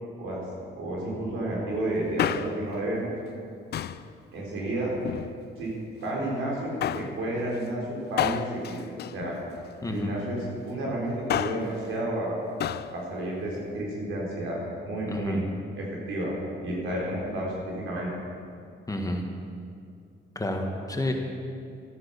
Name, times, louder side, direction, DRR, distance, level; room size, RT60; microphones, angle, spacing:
voice 1, 0.8-3.1 4.3-4.9 5.6-5.7 6.0-8.8 9.1-9.4 9.9-12.4 12.9-15.4 15.8-16.3 16.6-18.1, right 1 dB, 85° right, -3 dB, 4.3 m, -31 dB
Male speech man speaking, 2.0-2.8 3.7-4.1 4.9-5.7 6.8-7.2 8.2-9.8 11.1-11.7 12.6-12.9 13.2-13.3, left 10 dB, 55° left, 0.5 m, -31 dB
voice 2, 9.8-10.2 15.1-15.5 18.9-19.2 20.4-21.1, left 1 dB, 15° left, 2 dB, 1.6 m, -30 dB
13.5 x 9.3 x 7.0 m, 2.4 s
cardioid pair, 90°, 20 cm